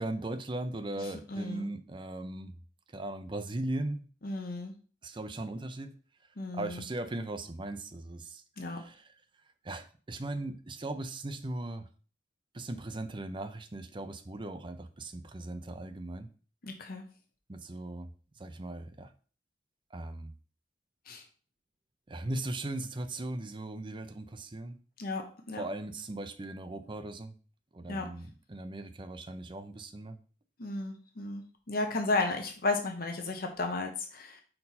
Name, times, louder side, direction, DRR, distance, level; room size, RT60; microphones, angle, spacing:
voice 1, 0.0-2.5 2.9-4.1 5.0-5.9 6.5-9.1 9.6-11.9 12.5-16.3 17.5-18.1 18.4-19.1 19.9-20.3 22.1-24.8 25.6-27.3 27.7-30.2, right 2 dB, 30° right, 8 dB, 0.6 m, -38 dB
voice 2, 1.3-1.7 4.2-4.7 6.4-6.8 8.6-8.8 16.6-17.0 21.1-21.2 25.0-25.6 27.9-28.1 30.6-34.4, left 3 dB, 55° left, 4 dB, 1.0 m, -34 dB
5.3 x 4.4 x 4.1 m, 0.39 s
head